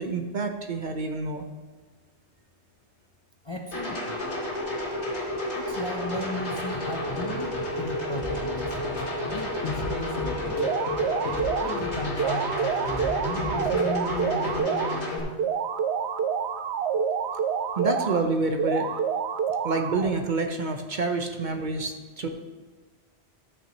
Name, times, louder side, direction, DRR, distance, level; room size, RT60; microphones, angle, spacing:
voice 1, 0.0-1.4 17.8-18.9 19.6-22.3, right 3 dB, 50° right, 5 dB, 0.9 m, -28 dB
voice 2, 3.4-4.2 5.5-8.8 9.3-10.6 11.6-15.4, left 2 dB, 30° left, 2 dB, 0.6 m, -35 dB
sound 1, 3.7-15.2, left 1 dB, 85° left, 2.5 m, -31 dB
sound 2, 8.2-14.6, left 2 dB, 70° left, 1.6 m, -37 dB
sound 3, 10.6-11.8 12.2-15.0 15.4-18.2 18.6-20.2, right 7 dB, 75° right, 0.9 m, -28 dB
13.0 x 9.0 x 3.0 m, 1.3 s
omnidirectional pair, 1.1 m